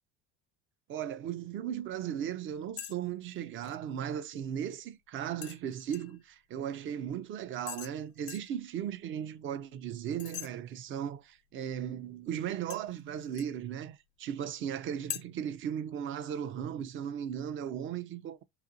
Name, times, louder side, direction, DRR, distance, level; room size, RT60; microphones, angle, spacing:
voice 1, 0.9-18.4, right 9 dB, 40° right, 0.4 m, -37 dB
sound 1, 2.8-3.0 3.2-3.8 5.4-6.2 7.7-8.0 8.3-8.5 10.2-10.5 12.7-13.6 15.1-15.2, left 13 dB, 70° left, 0.5 m, -42 dB
2.9 x 2.4 x 2.6 m
supercardioid pair, 90°, 30 cm